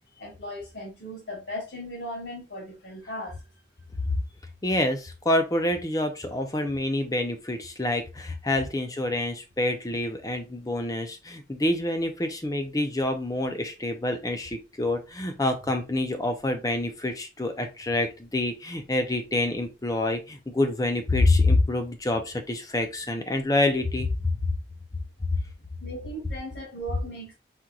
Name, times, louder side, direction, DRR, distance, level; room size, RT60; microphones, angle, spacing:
voice 1, 0.2-3.3 25.8-27.3, equal, 75° left, 2.5 m, -37 dB
voice 2, 4.6-24.6 25.3-25.4, left 2 dB, 20° left, 0.6 m, -27 dB
4.4 x 3.9 x 2.3 m
head